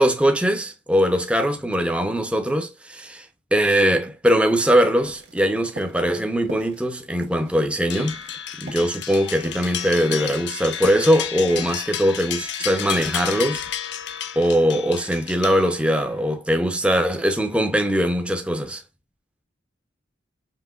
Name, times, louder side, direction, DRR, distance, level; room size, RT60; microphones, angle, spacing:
voice 1, 0.0-3.3 3.5-8.2 8.6-13.6 14.4-18.8, equal, 5° right, 0.7 m, -21 dB
sound 1, 5.0-5.5 5.8-6.1 6.5-6.9 7.2-10.5 10.7-12.0, right 2 dB, 65° right, 1.4 m, -40 dB
sound 2, 7.9-16.1, left 9 dB, 65° left, 0.6 m, -31 dB
5.7 x 3.3 x 2.4 m
head